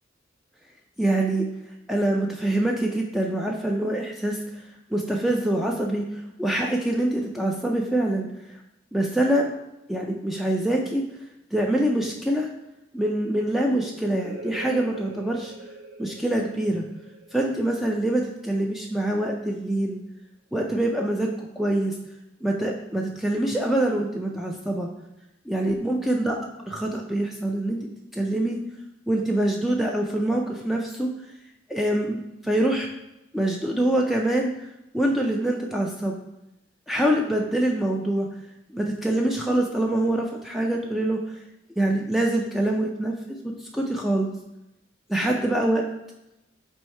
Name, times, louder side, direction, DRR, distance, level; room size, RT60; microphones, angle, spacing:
voice 1, 1.0-1.5 1.9-4.6 4.9-8.6 8.9-9.5 9.9-11.0 11.5-12.5 12.9-15.5 16.0-16.8 17.3-20.0 20.5-21.9 22.4-24.9 25.5-26.3 26.6-28.6 29.1-31.1 31.7-32.9 33.3-34.7 34.9-36.2 36.9-38.3 38.7-41.3 41.8-44.3 45.1-45.8, right 1 dB, ahead, -1 dB, 0.3 m, -25 dB
sound 1, 14.2-19.5, right 3 dB, 40° right, 1.0 m, -44 dB
4.5 x 2.7 x 4.2 m, 0.90 s
head